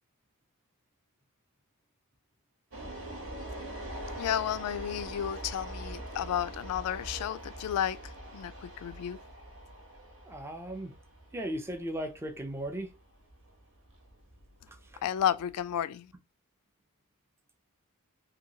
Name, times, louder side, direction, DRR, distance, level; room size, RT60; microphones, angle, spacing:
sound 1, 2.7-15.8, right 1 dB, 65° right, 1.0 m, -43 dB
voice 1, 4.2-9.2 15.0-16.1, left 10 dB, 85° left, 0.3 m, -32 dB
voice 2, 10.2-10.9 11.3-12.9 14.7-15.0, right 1 dB, 10° right, 0.3 m, -37 dB
2.8 x 2.7 x 2.6 m
head